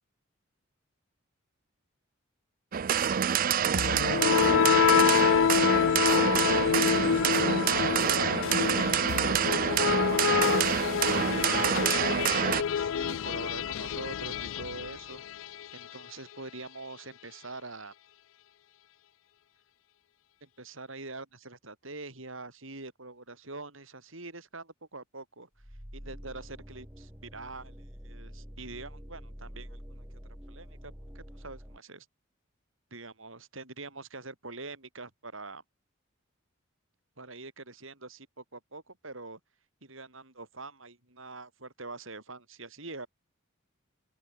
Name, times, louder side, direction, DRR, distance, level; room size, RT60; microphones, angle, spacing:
sound 1, 2.7-12.6, right 8 dB, 45° right, 0.4 m, -27 dB
sound 2, 3.8-15.7, left 7 dB, 65° left, 0.4 m, -27 dB
voice 1, 4.6-9.1 9.7-15.2 15.7-17.9 20.4-25.5 25.9-30.2 30.5-32.1 32.9-35.6 37.2-39.4 39.8-43.1, right 3 dB, 70° right, 6.0 m, -44 dB
sound 3, 25.6-31.8, equal, 10° right, 7.5 m, -46 dB
open air
head